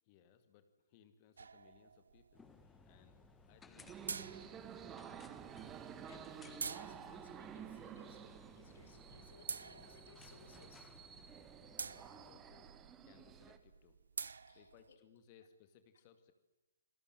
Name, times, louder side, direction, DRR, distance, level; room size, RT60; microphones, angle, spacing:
voice 1, 0.0-2.5 2.8-3.2 3.5-5.4 11.9-12.8 13.0-14.0 14.5-16.3, left 8 dB, 30° left, 9 dB, 2.3 m, -66 dB
sound 1, 1.4-14.9, right 5 dB, 60° right, 0.9 m, -50 dB
sound 2, 2.3-12.4, left 5 dB, 10° left, 1.4 m, -63 dB
sound 3, 3.8-13.6, right 8 dB, 15° right, 1.7 m, -52 dB
voice 2, 5.7-10.9 12.0-12.1 14.5-15.0, left 6 dB, 50° left, 6 dB, 4.6 m, -63 dB
27.0 x 21.0 x 9.1 m, 1.1 s
figure-of-eight pair, 125°, 0 cm